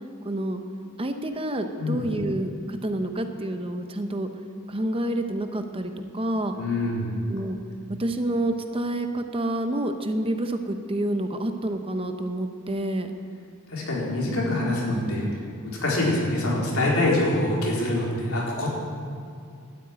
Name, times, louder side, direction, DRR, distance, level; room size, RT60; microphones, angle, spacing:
voice 1, 0.2-0.6 1.0-4.3 4.7-6.5 7.3-7.6 8.0-13.1 14.9-15.4, right 1 dB, 25° right, 6 dB, 0.8 m, -28 dB
voice 2, 1.8-2.2 6.5-7.2 13.7-15.2 15.6-18.7, left 1 dB, 85° left, -4 dB, 4.0 m, -25 dB
12.5 x 9.1 x 9.0 m, 2.4 s
head